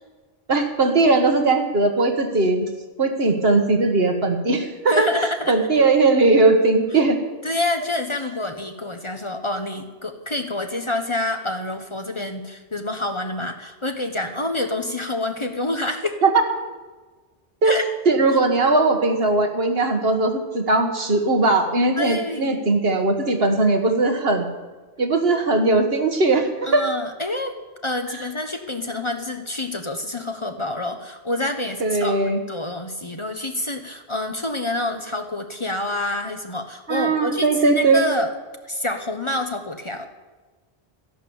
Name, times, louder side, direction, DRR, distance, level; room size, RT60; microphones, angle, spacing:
voice 1, 0.5-2.7 3.0-7.2 16.2-16.4 17.6-17.7 18.1-24.5 25.0-26.9 28.1-28.2 31.8-32.4 36.9-38.1, right 3 dB, 65° right, 5 dB, 1.8 m, -19 dB
voice 2, 4.9-5.6 7.4-16.2 17.6-17.9 22.0-22.6 26.6-27.5 27.8-38.3 38.7-40.1, left 1 dB, 30° left, 6 dB, 1.0 m, -27 dB
13.5 x 11.0 x 7.1 m, 1.3 s
omnidirectional pair, 1.1 m